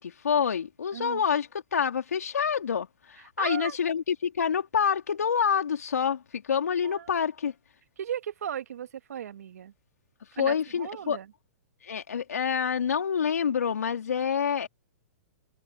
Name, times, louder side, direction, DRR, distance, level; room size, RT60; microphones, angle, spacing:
voice 1, 0.0-7.5 10.4-11.2 11.8-14.7, left 7 dB, 85° left, 3.4 m, -27 dB
voice 2, 0.9-1.2 3.4-3.8 6.8-7.1 8.0-9.7 10.4-11.3, right 9 dB, 75° right, 1.8 m, -36 dB
hypercardioid pair, 125°, 8 cm